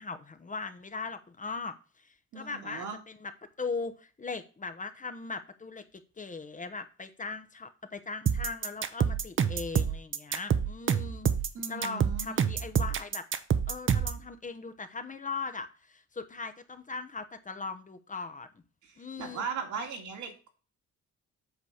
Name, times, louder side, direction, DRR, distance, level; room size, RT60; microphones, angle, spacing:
voice 1, 0.0-1.8 2.0-3.3 3.6-5.8 6.2-11.3 11.7-13.3 13.7-18.5 19.0-19.4, left 4 dB, 25° left, 0.9 m, -39 dB
voice 2, 2.3-3.0 11.5-12.5 18.8-20.5, right 5 dB, 75° right, 2.4 m, -38 dB
sound 1, 8.3-14.2, right 7 dB, 40° right, 0.8 m, -27 dB
8.2 x 4.1 x 6.4 m
cardioid pair, 90°, 30 cm